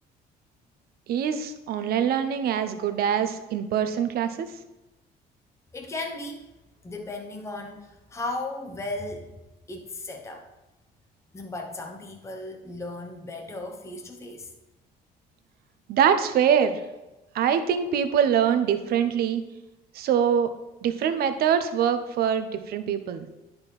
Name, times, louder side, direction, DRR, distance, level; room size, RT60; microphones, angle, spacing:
voice 1, 1.1-4.5 15.9-16.8 17.3-19.4 19.9-20.5 20.8-23.3, right 8 dB, 65° right, 10 dB, 0.8 m, -24 dB
voice 2, 5.7-6.5 6.8-9.4 9.7-10.5 11.3-14.5, left 2 dB, 15° left, 3 dB, 0.9 m, -36 dB
9.9 x 4.4 x 5.3 m, 1.0 s
cardioid pair, 110°, 17 cm